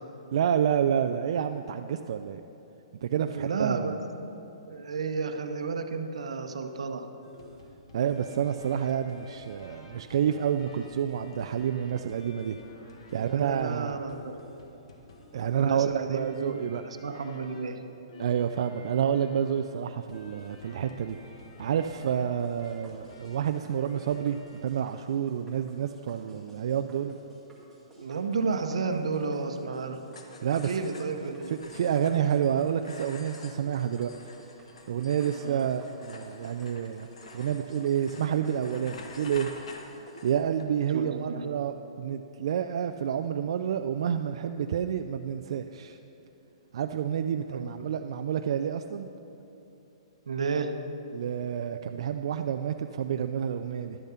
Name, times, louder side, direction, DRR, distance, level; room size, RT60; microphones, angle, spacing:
voice 1, 0.3-2.4 3.0-4.0 7.9-12.6 13.1-14.0 15.3-16.8 18.2-21.2 21.6-27.2 30.4-30.7 31.6-34.1 34.9-37.1 37.3-39.5 40.2-46.0 46.7-49.1 51.1-54.0, right 8 dB, 60° right, 7 dB, 0.3 m, -29 dB
voice 2, 3.3-3.9 4.6-7.1 13.1-14.3 15.5-16.6 17.0-17.8 28.0-30.0 30.6-31.7 35.4-35.7 40.9-41.4 47.5-47.9 50.3-50.8, right 4 dB, 85° right, 7 dB, 0.8 m, -32 dB
sound 1, 7.2-24.8 25.1-25.4, left 2 dB, 70° left, 1.6 m, -52 dB
sound 2, 22.4-40.3, right 2 dB, 5° left, 2.1 m, -56 dB
sound 3, 30.1-40.7, left 3 dB, 90° left, 1.1 m, -49 dB
11.5 x 7.3 x 5.7 m, 2.9 s
hypercardioid pair, 150°, 3 cm